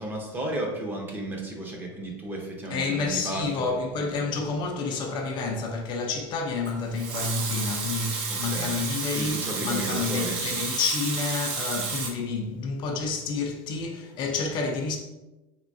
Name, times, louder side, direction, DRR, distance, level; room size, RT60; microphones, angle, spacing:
voice 1, 0.0-3.7 8.3-8.8 9.1-10.4, right 1 dB, 15° right, 0.7 m, -33 dB
voice 2, 2.7-15.0, left 4 dB, 45° left, 0.5 m, -29 dB
Water tap faucet / Sink (filling or washing) / Liquid, 6.6-12.1, right 4 dB, 55° right, 0.7 m, -31 dB
3.6 x 3.0 x 2.6 m
supercardioid pair, 130°, 11 cm